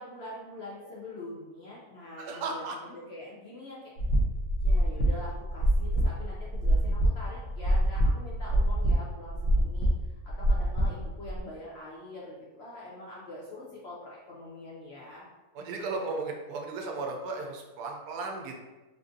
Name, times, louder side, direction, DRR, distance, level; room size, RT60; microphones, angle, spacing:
voice 1, 0.0-3.9 4.6-15.3, left 1 dB, 65° left, -5 dB, 0.6 m, -44 dB
voice 2, 2.2-2.8 15.5-18.6, right 3 dB, 90° right, 2 dB, 1.1 m, -35 dB
sound 1, 4.0-11.4, right 1 dB, 90° left, 1.2 m, -26 dB
3.5 x 2.5 x 2.6 m, 1.2 s
omnidirectional pair, 1.6 m